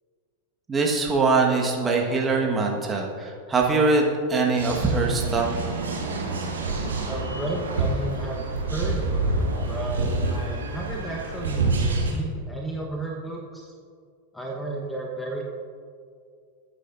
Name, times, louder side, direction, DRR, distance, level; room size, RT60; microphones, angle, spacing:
voice 1, 0.7-5.6, right 3 dB, 15° right, 0 dB, 1.5 m, -22 dB
sound 1, 4.6-12.1, right 3 dB, 70° right, 2.4 m, -27 dB
voice 2, 7.0-13.7 14.3-15.4, right 2 dB, 5° left, -1 dB, 1.2 m, -33 dB
20.5 x 9.2 x 2.6 m, 2.2 s
figure-of-eight pair, 90°, 0 cm